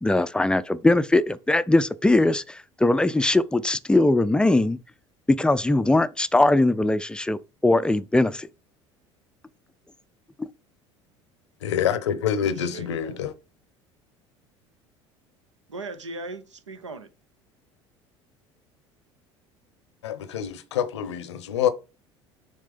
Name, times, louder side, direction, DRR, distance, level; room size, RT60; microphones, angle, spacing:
voice 1, 0.0-4.8 5.3-8.5, left 2 dB, 5° left, 0.4 m, -21 dB
voice 2, 11.6-13.3 20.0-21.7, left 9 dB, 70° left, 0.7 m, -26 dB
voice 3, 12.4-13.2 15.7-17.1, right 3 dB, 80° right, 0.7 m, -38 dB
6.5 x 3.5 x 5.1 m
figure-of-eight pair, 65°, 15 cm